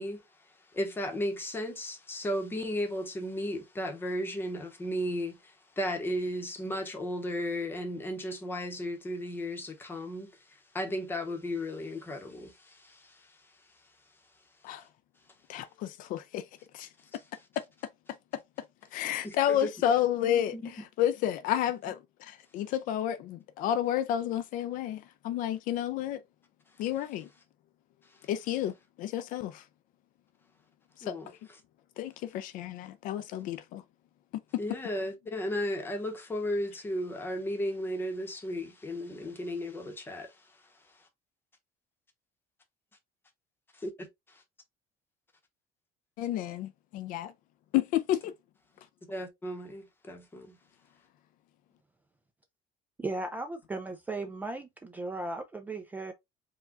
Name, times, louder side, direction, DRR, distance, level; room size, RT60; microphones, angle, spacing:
voice 1, 0.0-13.5 17.1-17.2 19.2-19.7 20.2-20.7 31.0-31.3 34.6-41.1 43.7-44.4 49.0-50.6, equal, 15° left, 0.9 m, -35 dB
voice 2, 15.5-16.4 16.7-16.9 18.9-26.2 26.8-27.3 28.3-29.6 31.0-31.1 32.0-33.8 46.2-47.3 47.7-48.3, left 11 dB, 60° left, 0.4 m, -31 dB
voice 3, 53.0-56.1, right 2 dB, 10° right, 0.4 m, -36 dB
4.7 x 2.3 x 3.7 m
cardioid pair, 170°, 16 cm